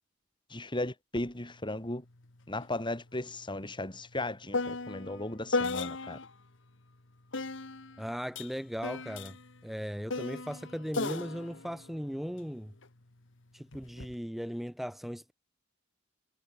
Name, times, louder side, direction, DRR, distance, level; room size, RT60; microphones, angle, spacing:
voice 1, 0.5-2.0 2.5-6.2, left 1 dB, 25° left, 4.2 m, -36 dB
sound 1, 1.2-1.3 1.6-6.4 7.3-12.9 13.7-14.1, left 3 dB, 70° left, 1.7 m, -37 dB
voice 2, 8.0-9.4 9.6-12.7 13.5-15.3, equal, ahead, 2.5 m, -37 dB
head